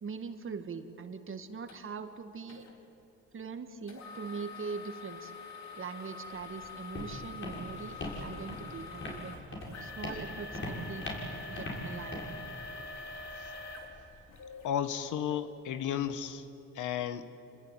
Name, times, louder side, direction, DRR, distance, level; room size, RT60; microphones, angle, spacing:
voice 1, 0.0-2.7 3.3-5.3 5.8-9.4 9.8-11.0 11.5-12.2, right 5 dB, 45° right, 8 dB, 2.0 m, -42 dB
sound 1, 1.7-1.8 2.5-2.7 3.9-14.7 15.3-15.4 16.0-16.1, left 3 dB, 60° left, 4.4 m, -45 dB
Walk footsteps, 6.3-14.2, left 1 dB, 40° left, 6.7 m, -42 dB
voice 2, 14.6-16.5 16.7-17.3, left 9 dB, 80° left, 11 dB, 1.4 m, -33 dB
28.5 x 20.5 x 9.3 m, 2.9 s
cardioid pair, 90°, 30 cm